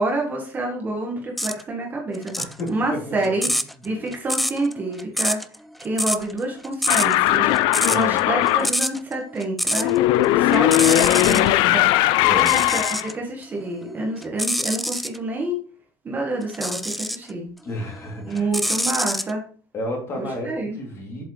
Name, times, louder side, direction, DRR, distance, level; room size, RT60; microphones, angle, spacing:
voice 1, 0.0-2.3 2.7-3.5 3.8-5.4 5.8-9.9 10.4-11.9 12.4-15.6 16.0-17.5 18.3-19.4 20.2-20.8, right 2 dB, 20° right, 0 dB, 1.5 m, -28 dB
sound 1, 1.4-1.6 2.1-10.0 10.2-11.5 12.3-13.1 13.7-15.2 16.5-17.3 17.8-19.3, equal, ahead, 0.3 m, -26 dB
voice 2, 2.4-3.6 7.8-8.2 12.2-12.7 17.6-18.5 19.7-21.2, left 1 dB, 30° left, 0 dB, 2.9 m, -32 dB
sound 2, 6.9-8.7 9.7-13.1, left 14 dB, 65° left, 0.5 m, -18 dB
7.6 x 7.6 x 3.2 m, 0.42 s
cardioid pair, 170°, 9 cm